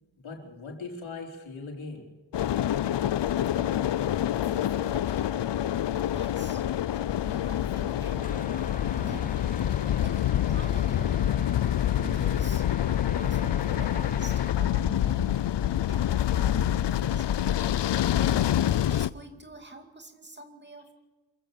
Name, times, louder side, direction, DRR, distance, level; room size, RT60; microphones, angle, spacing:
voice 1, 0.0-2.1 9.9-10.0, left 3 dB, 90° left, 1 dB, 4.5 m, -40 dB
sound 1, 2.3-19.1, left 11 dB, 65° left, 0.6 m, -26 dB
voice 2, 4.4-5.4 5.9-6.7 7.2-8.3 9.0-9.4 10.0-11.4 12.0-12.7 13.2-17.5 18.9-20.9, right 2 dB, 25° right, 5 dB, 2.4 m, -46 dB
sound 2, 8.2-14.5, left 3 dB, 20° left, 0.7 m, -42 dB
27.0 x 15.5 x 6.8 m, 1.2 s
wide cardioid pair, 150°, 46 cm